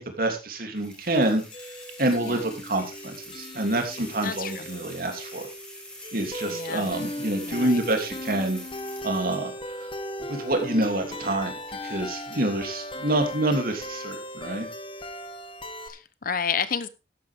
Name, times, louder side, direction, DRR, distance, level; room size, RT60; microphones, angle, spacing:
voice 1, 0.0-1.7 2.0-5.5 6.1-8.6 9.0-9.5 9.8-9.9 10.3-14.7, right 1 dB, 55° right, 4 dB, 2.9 m, -27 dB
sound 1, 0.7-9.5, left 1 dB, 5° left, 4.2 m, -44 dB
sound 2, 1.5-15.9, left 1 dB, 30° left, 1.4 m, -38 dB
voice 2, 4.2-4.7 6.5-6.9 7.5-7.8 15.8-16.9, left 7 dB, 50° left, 14 dB, 0.9 m, -30 dB
13.5 x 10.5 x 3.6 m, 0.28 s
head